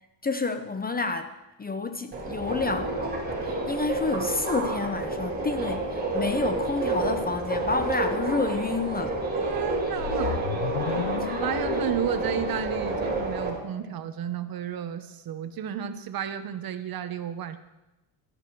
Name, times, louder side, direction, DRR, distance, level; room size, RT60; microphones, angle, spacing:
voice 1, 0.2-1.3 1.6-3.0 3.4-9.2 11.2-11.4, left 3 dB, 20° left, 9 dB, 0.7 m, -29 dB
Subway metro underground, 2.1-13.5, right 2 dB, 20° right, 5.3 m, -29 dB
voice 2, 9.2-10.7 11.4-17.6, right 9 dB, 45° right, 11 dB, 1.0 m, -32 dB
sound 1, 10.0-14.2, left 12 dB, 75° left, 1.0 m, -36 dB
12.0 x 11.0 x 4.6 m, 1.0 s
cardioid pair, 110°, 49 cm